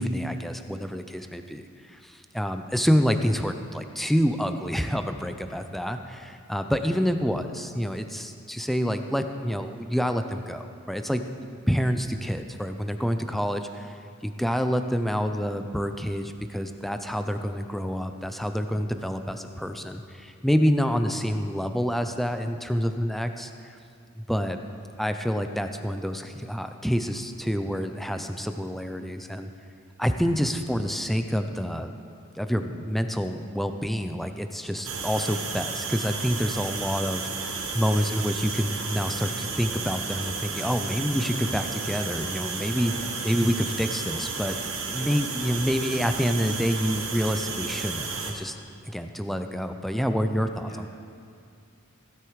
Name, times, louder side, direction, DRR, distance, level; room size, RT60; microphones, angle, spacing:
voice 1, 0.0-23.7 24.2-24.6 25.0-29.5 30.0-31.9 32.4-37.5 37.7-42.9 43.2-44.6 44.9-48.6 48.9-50.7, equal, ahead, 7 dB, 0.4 m, -27 dB
sound 1, 34.8-48.3, right 4 dB, 70° right, 1.2 m, -33 dB
voice 2, 45.0-45.3 50.7-51.0, left 1 dB, 40° left, 0 dB, 1.7 m, -46 dB
16.0 x 8.1 x 4.7 m, 2.4 s
head